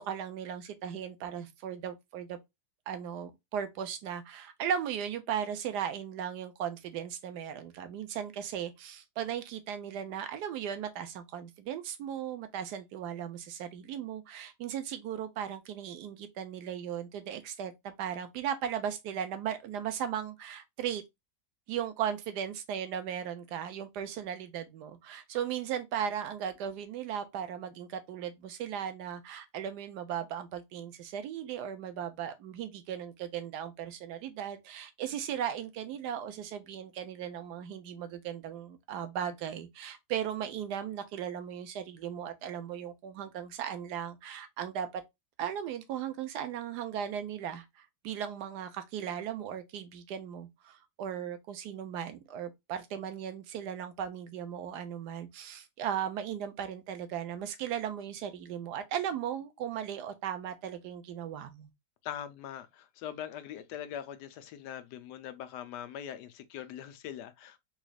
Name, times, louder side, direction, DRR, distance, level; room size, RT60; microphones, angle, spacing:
voice 1, 0.0-2.4 2.9-21.0 21.7-45.0 45.4-61.7, right 9 dB, 80° right, 1.2 m, -37 dB
voice 2, 62.0-67.6, left 10 dB, 80° left, 1.2 m, -42 dB
3.9 x 3.1 x 2.3 m
omnidirectional pair, 1.8 m